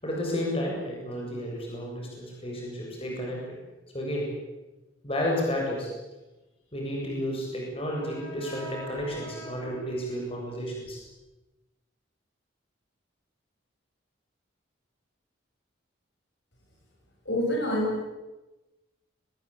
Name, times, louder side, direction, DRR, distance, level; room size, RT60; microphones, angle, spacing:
voice 1, 0.0-3.6 3.9-4.3 5.0-5.9 6.7-11.0, equal, 30° left, -1 dB, 7.6 m, -32 dB
voice 2, 17.2-18.1, left 1 dB, 60° left, 0 dB, 7.9 m, -27 dB
25.0 x 21.0 x 8.6 m, 1.1 s
head